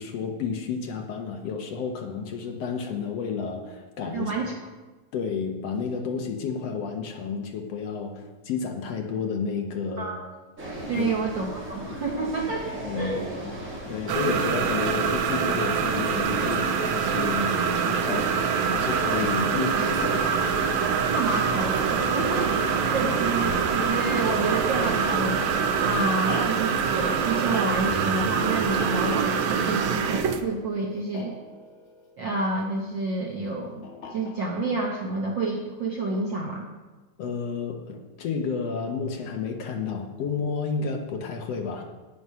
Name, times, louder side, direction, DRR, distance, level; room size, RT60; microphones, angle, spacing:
voice 1, 0.0-4.3 5.1-10.1 10.9-11.1 12.8-13.2 13.9-18.4 18.7-20.4 37.2-41.8, left 5 dB, 65° left, 3 dB, 2.0 m, -31 dB
voice 2, 4.1-4.5 10.0-10.3 10.9-13.3 18.1-18.2 21.1-25.4 25.8-31.3 32.2-33.8 34.1-36.7, right 3 dB, 60° right, -1 dB, 1.3 m, -29 dB
sound 1, 10.6-26.1, right 1 dB, 25° right, 2.9 m, -35 dB
sound 2, 14.1-30.4, right 6 dB, 80° right, 2.0 m, -25 dB
sound 3, 17.0-32.8 33.8-34.7, left 3 dB, 80° left, 2.6 m, -43 dB
9.6 x 9.6 x 5.7 m, 1.2 s
omnidirectional pair, 3.3 m